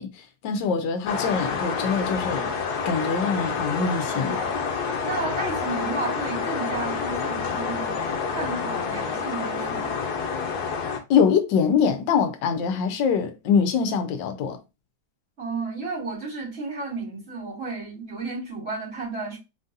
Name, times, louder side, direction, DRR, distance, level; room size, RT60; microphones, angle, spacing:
voice 1, 0.0-2.5 2.8-4.4 11.1-14.6, left 6 dB, 85° left, 1.4 m, -24 dB
sound 1, 1.1-11.0, left 5 dB, 65° left, 1.3 m, -28 dB
voice 2, 5.0-8.0 8.3-10.0 15.4-19.4, right 3 dB, 40° right, 2.6 m, -32 dB
4.0 x 3.8 x 2.6 m
omnidirectional pair, 1.9 m